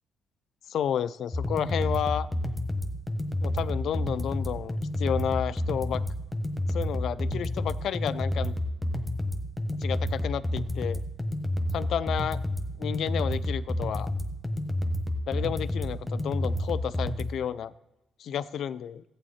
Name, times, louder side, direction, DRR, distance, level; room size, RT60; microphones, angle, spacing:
voice 1, 0.7-2.3 3.4-6.0 6.7-8.6 9.8-11.0 11.7-12.4 12.8-14.1 15.3-17.7 18.2-19.0, left 9 dB, 70° left, 18 dB, 0.4 m, -31 dB
sound 1, 1.3-17.3, left 1 dB, 10° left, 1.2 m, -30 dB
14.5 x 8.8 x 4.2 m, 0.97 s
cardioid pair, 90°, 0 cm